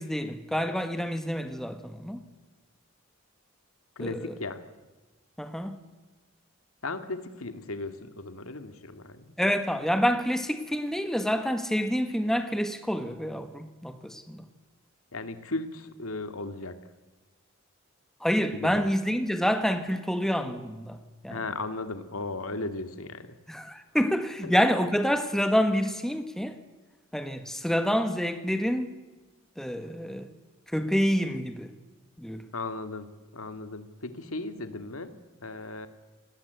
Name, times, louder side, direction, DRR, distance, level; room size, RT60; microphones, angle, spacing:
voice 1, 0.0-2.2 4.0-4.3 5.4-5.8 9.4-14.5 18.2-21.4 23.5-26.6 27.1-28.9 29.6-30.3 30.7-31.7 32.2-32.4, equal, ahead, 1.5 m, -27 dB
voice 2, 4.0-4.6 6.8-9.3 15.1-16.8 18.5-18.9 21.3-23.3 24.4-24.5 32.5-33.1 33.3-35.1 35.4-35.9, left 2 dB, 85° left, 2.2 m, -36 dB
29.0 x 19.5 x 8.2 m
head